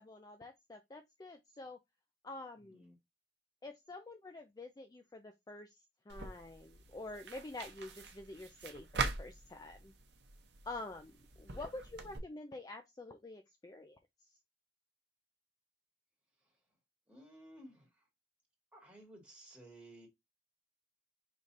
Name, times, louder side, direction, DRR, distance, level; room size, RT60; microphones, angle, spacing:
voice 1, 0.0-1.8 2.2-2.9 3.6-5.7 6.1-9.9 10.7-14.0, left 2 dB, 20° left, 0.4 m, -48 dB
voice 2, 2.6-3.0 16.4-16.6 17.1-18.1 18.7-20.1, right 1 dB, 5° right, 2.0 m, -56 dB
sound 1, 6.1-12.2, right 4 dB, 70° right, 0.8 m, -43 dB
4.9 x 3.1 x 2.7 m
head